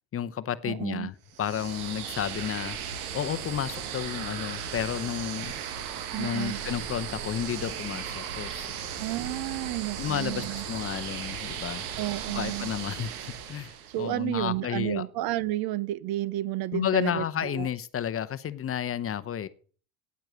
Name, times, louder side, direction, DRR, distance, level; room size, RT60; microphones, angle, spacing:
voice 1, 0.1-5.5 6.2-8.7 10.0-11.8 12.3-15.1 16.7-19.5, left 9 dB, 30° left, 0.8 m, -32 dB
voice 2, 0.6-1.1 6.1-6.6 9.0-10.6 12.0-12.7 13.9-17.7, right 15 dB, 55° right, 0.7 m, -31 dB
sound 1, 1.3-14.1, right 8 dB, 90° right, 1.8 m, -36 dB
9.6 x 8.9 x 6.9 m
supercardioid pair, 100°, 43 cm